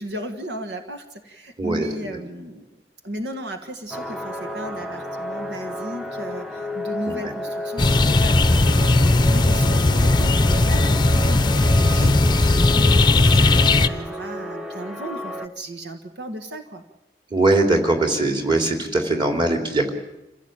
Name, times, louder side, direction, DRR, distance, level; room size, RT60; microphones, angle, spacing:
voice 1, 0.0-2.6 3.0-8.9 9.2-16.8, equal, 75° right, 6 dB, 1.7 m, -35 dB
voice 2, 1.6-2.2 7.1-7.3 17.3-19.9, right 2 dB, 25° right, 3 dB, 3.4 m, -21 dB
sound 1, 3.9-15.5, equal, 5° right, 0.9 m, -32 dB
sound 2, 7.8-13.9, left 2 dB, 25° left, 0.8 m, -17 dB
27.5 x 16.0 x 9.0 m, 0.90 s
head